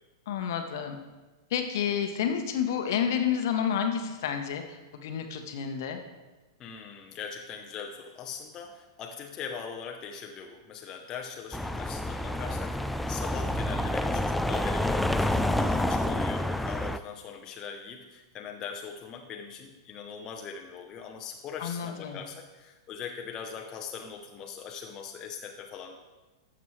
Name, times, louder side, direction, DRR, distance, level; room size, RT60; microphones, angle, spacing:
voice 1, 0.3-1.0 1.5-6.0 21.6-22.2, left 8 dB, 55° left, 6 dB, 1.0 m, -30 dB
voice 2, 6.6-26.0, left 6 dB, 30° left, 3 dB, 0.7 m, -41 dB
sound 1, 11.5-17.0, left 1 dB, 5° left, 0.3 m, -28 dB
12.5 x 7.3 x 3.2 m, 1.2 s
figure-of-eight pair, 100°, 2 cm